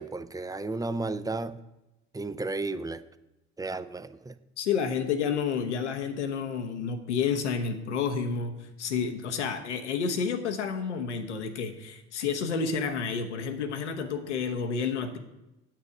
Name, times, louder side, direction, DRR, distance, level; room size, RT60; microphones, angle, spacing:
voice 1, 0.0-1.6 2.1-3.0 3.6-4.4, right 3 dB, 10° right, 13 dB, 0.5 m, -33 dB
voice 2, 4.6-15.2, left 6 dB, 85° left, 7 dB, 1.0 m, -30 dB
8.9 x 8.0 x 4.8 m, 0.99 s
figure-of-eight pair, 55°, 34 cm